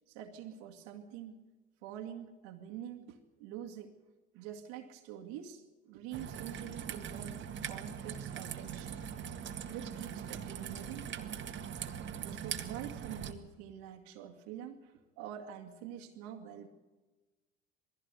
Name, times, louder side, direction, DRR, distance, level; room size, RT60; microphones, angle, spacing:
voice 1, 0.1-1.4 1.8-3.9 4.3-7.4 7.7-9.0 9.7-11.5 12.2-16.7, right 10 dB, 75° right, 3 dB, 2.2 m, -46 dB
Raindrop / Trickle dribble, 6.1-13.3, right 8 dB, 40° right, 1.9 m, -41 dB
20.5 x 16.0 x 8.2 m, 1.2 s
supercardioid pair, 90°, 29 cm